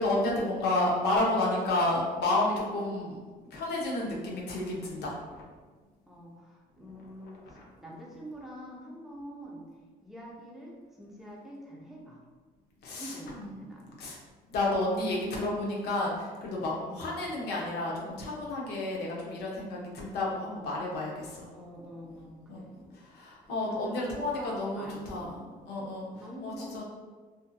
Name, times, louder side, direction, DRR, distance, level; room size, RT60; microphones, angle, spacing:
voice 1, 0.0-3.2 3.5-5.4 7.5-7.7 12.8-13.5 14.0-14.2 14.5-21.5 22.5-22.6 23.0-25.4 25.7-26.1 26.4-26.8, left 2 dB, 75° left, -3 dB, 0.7 m, -31 dB
voice 2, 6.1-9.8 10.0-12.2 12.9-14.0 16.7-17.1 21.5-22.9 23.7-25.6 26.0-26.8, equal, ahead, -5 dB, 0.7 m, -46 dB
2.6 x 2.5 x 2.3 m, 1.4 s
cardioid pair, 110°, 17 cm